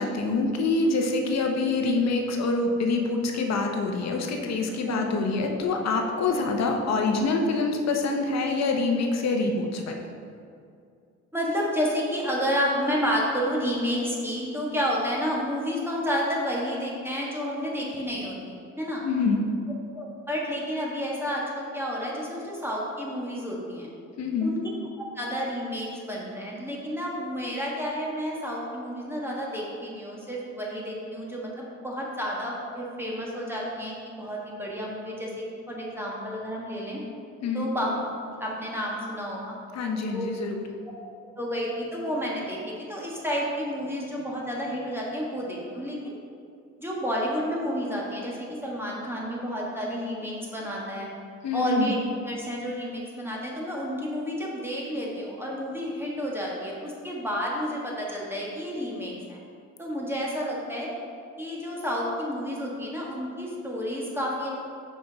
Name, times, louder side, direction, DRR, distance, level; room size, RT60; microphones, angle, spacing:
voice 1, 0.0-10.0 19.0-19.4 24.2-24.5 37.4-37.7 39.7-40.6 51.4-52.0, left 3 dB, 60° left, 3 dB, 0.9 m, -26 dB
voice 2, 4.8-5.3 11.3-19.0 19.9-23.9 24.4-24.6 25.0-37.0 37.5-37.9 38.4-39.5 40.1-40.3 41.4-46.2 46.8-51.1 51.5-52.0 52.2-59.4 59.8-60.9 61.4-64.5, equal, 10° right, -4 dB, 1.3 m, -30 dB
6.0 x 5.0 x 3.9 m, 2.4 s
cardioid pair, 90°, 30 cm